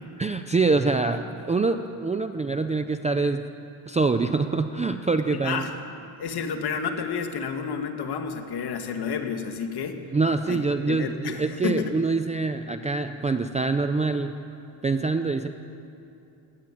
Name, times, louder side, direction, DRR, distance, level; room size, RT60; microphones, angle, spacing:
voice 1, 0.2-3.4 3.9-5.6 10.1-14.3 14.8-15.5, right 3 dB, 15° right, 7 dB, 0.5 m, -25 dB
voice 2, 5.3-5.7 6.2-10.0 10.5-10.6 10.9-11.9, left 6 dB, 50° left, 5 dB, 2.2 m, -30 dB
22.0 x 17.5 x 9.2 m, 2.7 s
cardioid pair, 160°, 50 cm